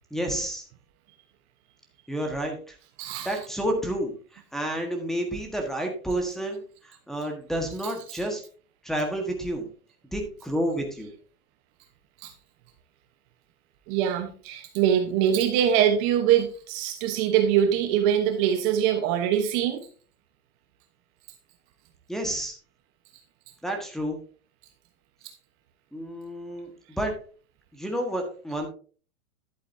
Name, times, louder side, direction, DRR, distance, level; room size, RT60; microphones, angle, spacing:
voice 1, 0.1-0.6 2.1-2.7 3.2-8.4 8.8-9.7 10.1-11.1 22.1-22.6 23.6-24.2 25.9-27.2 27.7-28.7, right 1 dB, ahead, 0 dB, 1.4 m, -30 dB
voice 2, 3.0-3.4 7.8-8.2 12.2-12.3 13.9-19.9, right 9 dB, 35° right, 6 dB, 1.1 m, -23 dB
11.5 x 8.1 x 2.7 m, 0.39 s
hypercardioid pair, 145°, 43 cm